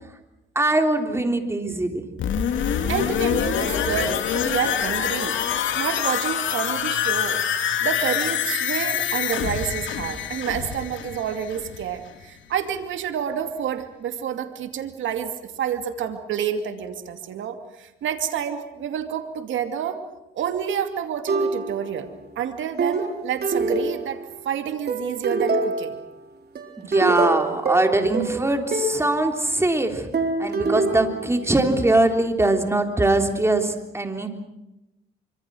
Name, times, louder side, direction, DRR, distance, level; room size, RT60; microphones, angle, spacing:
voice 1, 0.5-2.1 26.8-30.1 30.4-34.3, right 2 dB, 15° right, 5 dB, 3.4 m, -22 dB
sound 1, 2.2-11.9 12.2-12.3, left 8 dB, 75° left, 2.8 m, -25 dB
voice 2, 2.9-5.4 5.8-7.5 7.8-20.0 20.3-22.1 22.4-26.0, right 8 dB, 75° right, 7 dB, 2.5 m, -29 dB
sound 2, 21.3-22.1 22.8-24.4 24.9-26.1 26.6-29.1 30.1-31.9, right 3 dB, 55° right, 4.0 m, -25 dB
25.5 x 25.0 x 6.3 m, 0.94 s
cardioid pair, 90°, 20 cm